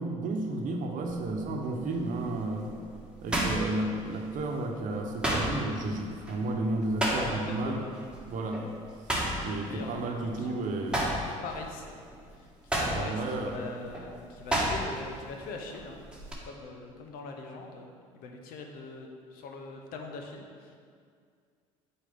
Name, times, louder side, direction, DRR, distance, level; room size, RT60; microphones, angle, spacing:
voice 1, 0.0-2.7 3.2-7.8 8.3-8.6 9.1-11.2 12.9-13.6, right 2 dB, 55° right, 2 dB, 1.0 m, -32 dB
sound 1, 1.0-1.4 1.9-4.4 4.7-7.6 7.9-8.2 8.5-10.5 10.8-15.1 15.4-16.3, right 1 dB, 5° right, 1.6 m, -32 dB
voice 2, 7.1-7.9 9.6-12.0 12.3-16.0 16.4-17.9 18.1-20.8, left 3 dB, 60° left, 2 dB, 0.9 m, -42 dB
8.3 x 4.5 x 3.7 m, 2.2 s
hypercardioid pair, 65°, 16 cm